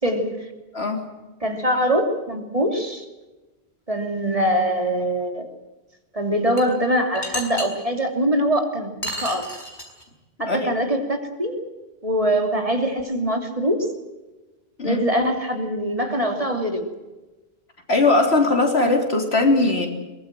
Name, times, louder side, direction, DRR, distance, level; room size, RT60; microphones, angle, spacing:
voice 1, 0.0-0.5 1.4-3.0 3.9-5.5 6.1-9.4 10.4-11.7 12.0-13.9 14.8-16.9, equal, 30° right, 4 dB, 3.2 m, -23 dB
voice 2, 0.7-1.1 10.5-10.7 14.8-15.0 17.9-19.9, left 2 dB, 75° left, 3 dB, 3.7 m, -19 dB
sound 1, 6.6-6.7 7.2-7.7 9.0-10.0, equal, 45° left, 4.9 m, -30 dB
23.0 x 20.0 x 7.7 m, 1.1 s
omnidirectional pair, 1.1 m